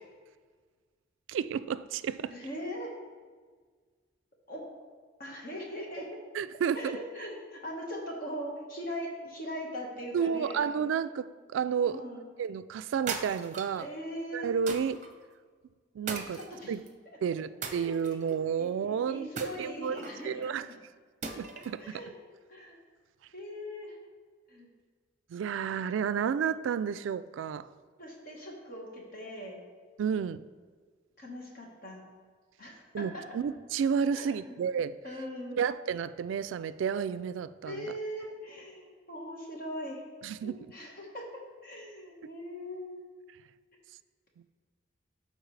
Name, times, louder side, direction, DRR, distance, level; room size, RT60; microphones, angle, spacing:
voice 1, 1.3-2.3 6.3-7.0 10.1-12.0 12.4-13.9 14.3-15.0 15.9-16.4 16.7-16.8 17.2-20.7 21.4-22.0 25.3-27.7 30.0-30.4 32.9-35.0 35.6-37.9 40.2-40.6, right 7 dB, 90° right, 16 dB, 0.3 m, -31 dB
voice 2, 2.3-2.9 4.5-4.6 5.2-6.1 6.7-10.6 11.8-12.3 13.8-14.5 16.3-16.7 17.6-18.2 18.6-20.8 21.8-22.1 22.5-22.8 23.3-24.0 24.5-24.7 28.0-29.6 31.2-32.0 32.6-33.4 34.1-34.5 35.0-35.6 37.6-40.0 40.4-41.2 41.6-43.1, equal, 50° left, -1 dB, 1.5 m, -40 dB
sound 1, 13.1-13.8 14.7-15.1 16.1-16.9 17.6-18.4 19.4-20.2 21.2-21.8, right 5 dB, 40° right, 0.6 m, -39 dB
13.0 x 4.3 x 3.3 m, 1.5 s
head